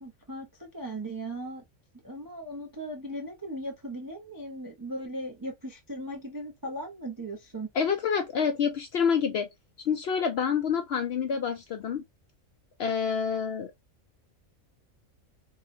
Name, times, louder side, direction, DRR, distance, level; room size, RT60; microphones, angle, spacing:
voice 1, 0.0-1.6 2.0-7.7, right 1 dB, 30° right, 0.4 m, -38 dB
voice 2, 7.7-9.5 9.9-12.0 12.8-13.7, left 6 dB, 65° left, 0.6 m, -27 dB
3.4 x 2.3 x 2.5 m
omnidirectional pair, 1.4 m